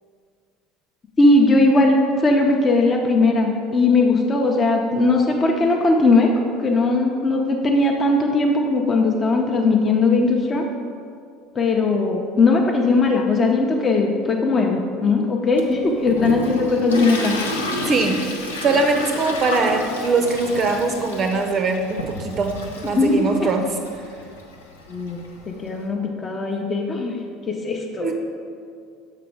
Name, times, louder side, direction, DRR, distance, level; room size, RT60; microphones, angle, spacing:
voice 1, 1.2-10.6 11.6-17.3 22.9-23.5 24.9-27.2 27.5-28.1, left 3 dB, 30° left, 1 dB, 0.6 m, -19 dB
Toilet flush, 15.6-25.8, left 1 dB, 75° left, 0.6 m, -31 dB
voice 2, 17.7-18.2 18.6-23.8 28.0-28.1, right 3 dB, 40° right, 4 dB, 0.5 m, -22 dB
6.7 x 4.3 x 4.8 m, 2.3 s
figure-of-eight pair, 65°, 0 cm